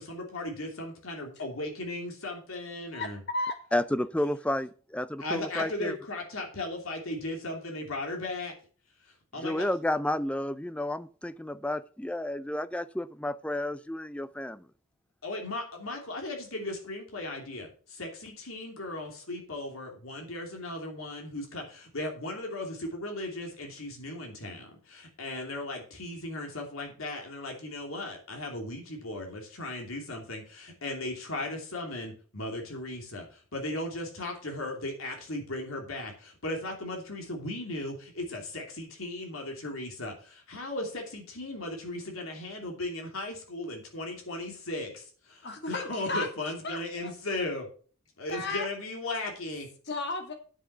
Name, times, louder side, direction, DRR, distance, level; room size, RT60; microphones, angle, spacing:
voice 1, 0.0-3.2 5.2-8.5 9.3-9.7 15.2-47.7 48.2-49.7, left 2 dB, 85° left, 2.9 m, -37 dB
voice 2, 2.9-3.6 45.4-46.3 46.6-47.1 48.3-48.7 49.8-50.3, left 2 dB, 55° left, 2.3 m, -34 dB
voice 3, 3.7-5.9 9.4-14.6, left 1 dB, 5° left, 0.5 m, -31 dB
9.7 x 5.8 x 6.8 m
head